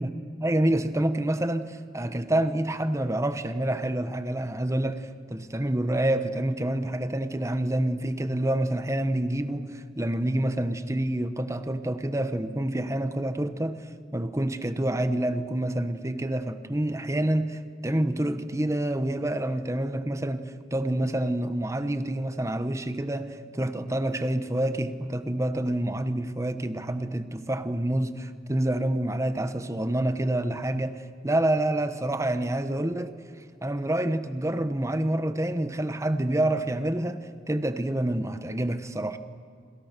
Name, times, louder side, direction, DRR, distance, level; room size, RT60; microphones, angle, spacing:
voice 1, 0.0-13.8 14.1-33.1 33.6-39.2, right 1 dB, 15° right, 10 dB, 1.1 m, -27 dB
28.0 x 27.0 x 6.8 m, 2.2 s
head